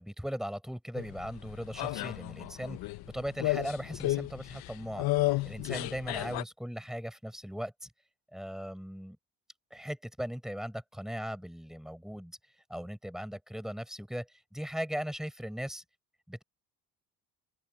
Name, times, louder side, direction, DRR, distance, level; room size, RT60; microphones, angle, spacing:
voice 1, 0.0-2.8 3.1-5.0 5.4-7.9 8.3-9.2 9.7-12.4 12.7-15.8 16.3-16.4, equal, ahead, 4.7 m, -38 dB
sound 1, 1.0-6.4, left 18 dB, 75° left, 1.2 m, -33 dB
open air
cardioid pair, 100°, 37 cm